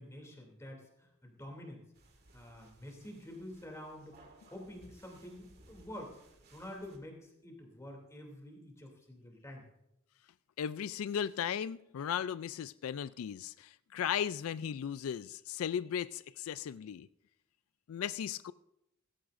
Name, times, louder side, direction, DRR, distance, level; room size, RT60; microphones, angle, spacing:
voice 1, 0.0-1.8 2.3-4.2 4.5-6.2 6.5-9.6, left 1 dB, 15° left, 2.8 m, -48 dB
sound 1, 1.9-7.0, right 2 dB, 50° right, 2.0 m, -61 dB
voice 2, 10.6-17.1 17.9-18.5, left 8 dB, 90° left, 0.3 m, -36 dB
16.5 x 15.0 x 2.6 m
head